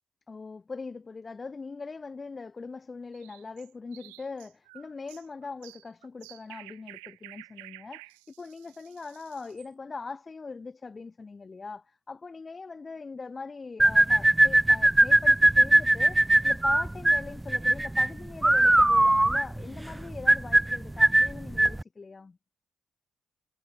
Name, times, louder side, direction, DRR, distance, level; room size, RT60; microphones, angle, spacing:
voice 1, 0.3-22.4, left 4 dB, 35° left, 4.9 m, -41 dB
sound 1, 3.1-9.7, right 34 dB, 80° right, 4.7 m, -51 dB
sound 2, 13.8-21.8, right 1 dB, 15° right, 0.9 m, -21 dB
hypercardioid pair, 40°, 0 cm